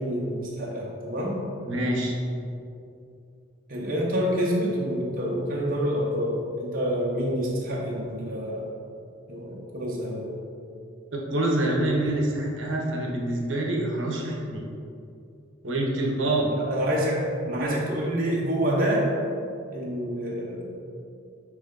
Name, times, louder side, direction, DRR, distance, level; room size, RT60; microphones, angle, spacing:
voice 1, 0.0-1.4 3.7-8.7 9.3-10.3 16.5-17.2 17.5-19.1 19.7-20.7, equal, 45° right, -4 dB, 0.9 m, -27 dB
voice 2, 1.6-2.2 11.1-14.6 15.6-16.5, right 1 dB, 70° right, -1 dB, 0.9 m, -26 dB
8.9 x 3.3 x 3.8 m, 2.5 s
head